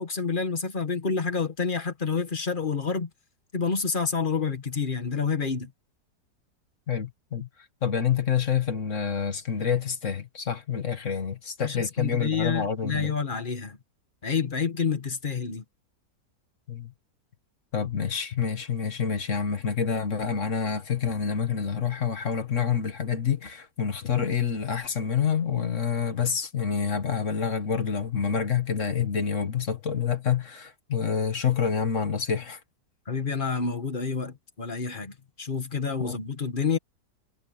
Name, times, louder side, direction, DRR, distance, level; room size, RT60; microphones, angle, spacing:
voice 1, 0.0-3.1 3.5-5.7 11.6-13.8 14.2-15.6 33.1-36.8, left 5 dB, 30° left, 1.5 m, -28 dB
voice 2, 6.9-7.5 7.8-13.1 16.7-16.9 17.7-32.6 36.0-36.2, left 7 dB, 45° left, 1.7 m, -27 dB
omnidirectional pair, 1.9 m